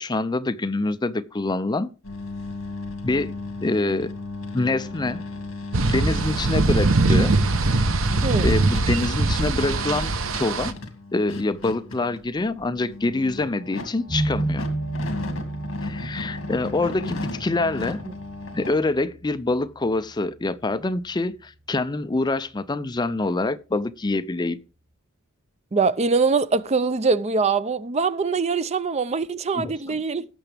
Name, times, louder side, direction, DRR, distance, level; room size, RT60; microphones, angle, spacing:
voice 1, 0.0-1.9 3.0-3.3 3.6-4.1 4.5-5.2 5.9-7.3 8.4-10.7 11.1-14.7 15.8-18.0 18.5-24.6 29.5-30.0, left 2 dB, 20° left, 0.5 m, -25 dB
sound 1, 2.0-18.7, left 3 dB, 65° left, 2.1 m, -36 dB
sound 2, 5.7-10.7, right 2 dB, 70° right, 0.9 m, -21 dB
voice 2, 8.2-8.5 25.7-30.3, right 4 dB, 30° right, 0.5 m, -23 dB
sound 3, 14.1-19.8, right 2 dB, 15° right, 5.4 m, -32 dB
17.5 x 6.9 x 3.4 m
head